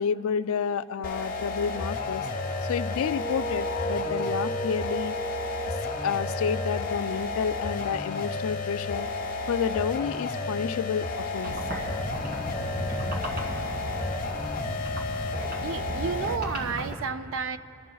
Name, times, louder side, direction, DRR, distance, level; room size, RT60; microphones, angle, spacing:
voice 1, 0.0-2.3 2.6-5.2 6.0-9.1 9.5-11.5, left 7 dB, 70° left, 12 dB, 0.3 m, -30 dB
sound 1, 1.0-16.5, left 3 dB, 40° left, 1.0 m, -32 dB
sound 2, 3.0-7.9, right 1 dB, ahead, 0.5 m, -36 dB
sound 3, 11.4-16.9, right 1 dB, 45° right, 1.9 m, -35 dB
voice 2, 15.6-17.6, right 5 dB, 60° right, 10 dB, 0.4 m, -31 dB
27.5 x 13.5 x 2.3 m, 2.6 s
head